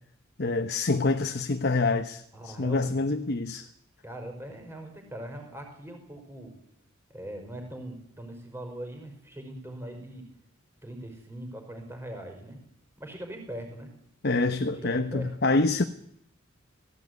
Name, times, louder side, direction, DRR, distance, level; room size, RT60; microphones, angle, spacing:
voice 1, 0.4-3.7 14.2-15.8, left 3 dB, 50° left, 1.0 m, -26 dB
voice 2, 2.3-3.0 4.0-6.5 7.1-10.2 10.8-12.6 13.0-13.9 14.7-15.3, right 1 dB, 10° right, 5.2 m, -41 dB
18.0 x 16.0 x 9.5 m
head